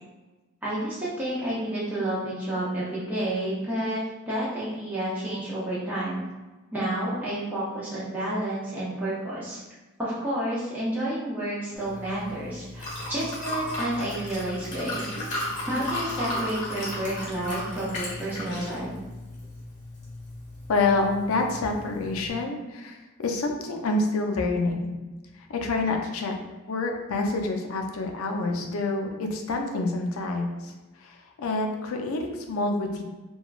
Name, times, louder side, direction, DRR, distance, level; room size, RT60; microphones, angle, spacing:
voice 1, 0.6-6.2 6.7-9.6 10.0-15.1 15.6-18.9, right 1 dB, 10° right, -10 dB, 0.5 m, -30 dB
Liquid, 11.8-22.3, left 1 dB, 35° left, 1.0 m, -35 dB
voice 2, 20.7-25.0 25.3-26.3 26.7-33.0, left 3 dB, 85° left, 3 dB, 0.4 m, -27 dB
3.0 x 2.2 x 2.3 m, 1.2 s
head